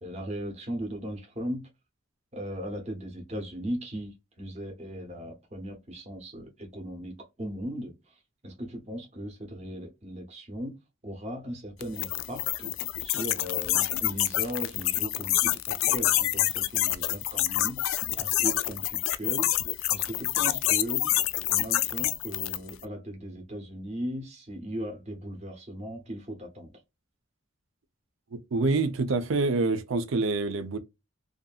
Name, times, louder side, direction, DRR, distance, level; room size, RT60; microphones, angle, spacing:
voice 1, 0.0-1.6 2.3-8.1 8.4-10.8 11.0-12.7 13.0-19.5 19.9-21.2 21.5-26.7, equal, 35° right, 0.8 m, -37 dB
sound 1, 11.8-22.7, left 14 dB, 80° left, 0.3 m, -27 dB
voice 2, 28.5-30.8, right 3 dB, 80° right, 0.5 m, -26 dB
2.6 x 2.5 x 2.3 m
head